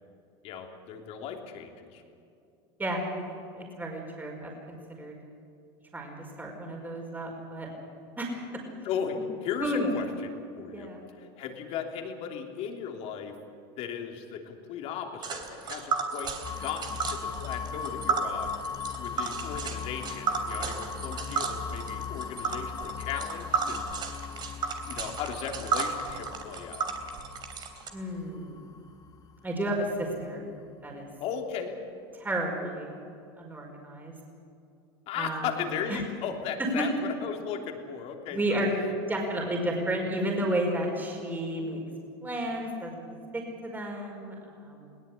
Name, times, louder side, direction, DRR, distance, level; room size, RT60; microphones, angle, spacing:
voice 1, 0.4-2.0 8.8-10.1 10.5-10.9 11.2-13.4 13.8-18.6 19.0-24.2 24.8-26.9 31.2-31.8 35.1-38.6, left 7 dB, 55° left, 3 dB, 3.2 m, -36 dB
voice 2, 3.5-5.2 5.9-7.7 8.2-8.6 9.6-9.9 10.7-11.0 27.9-28.7 29.4-30.5 30.8-31.1 32.1-32.9 33.4-34.1 35.2-35.5 35.9-36.0 36.6-36.9 38.3-38.7 39.1-41.8 42.2-43.1 43.3-44.9, right 1 dB, 15° right, 0 dB, 5.1 m, -32 dB
Tick, 15.2-27.9, right 5 dB, 35° right, 3.3 m, -33 dB
sound 1, 16.4-30.2, left 6 dB, 30° left, 1.3 m, -39 dB
21.0 x 18.5 x 8.6 m, 2.6 s
supercardioid pair, 110°, 12 cm